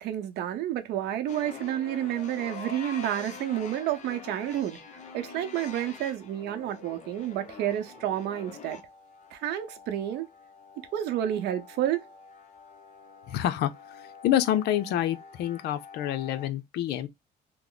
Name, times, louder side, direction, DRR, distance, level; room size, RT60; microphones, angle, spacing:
voice 1, 0.0-4.8 5.1-8.8 9.3-10.3 10.9-12.0, right 11 dB, 80° right, 0.8 m, -30 dB
sound 1, 1.3-16.5, left 5 dB, 45° left, 0.8 m, -46 dB
voice 2, 13.3-13.7 14.2-17.1, left 12 dB, 75° left, 0.6 m, -27 dB
3.0 x 2.1 x 3.8 m
cardioid pair, 110°, 17 cm